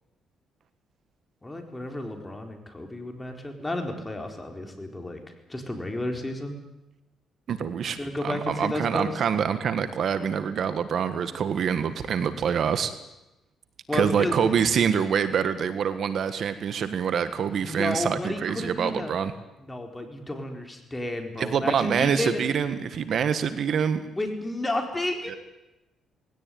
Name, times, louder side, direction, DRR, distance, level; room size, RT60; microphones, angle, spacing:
voice 1, 1.4-5.2 5.5-6.6 8.0-9.1 13.9-14.5 17.6-19.1 19.6-22.4 24.2-25.4, left 1 dB, 15° left, 4 dB, 4.4 m, -32 dB
voice 2, 7.5-8.0 8.2-12.9 13.9-19.3 21.4-24.1 25.3-25.4, right 7 dB, 60° right, 11 dB, 1.5 m, -25 dB
19.5 x 17.5 x 9.4 m, 0.96 s
cardioid pair, 90°, 0 cm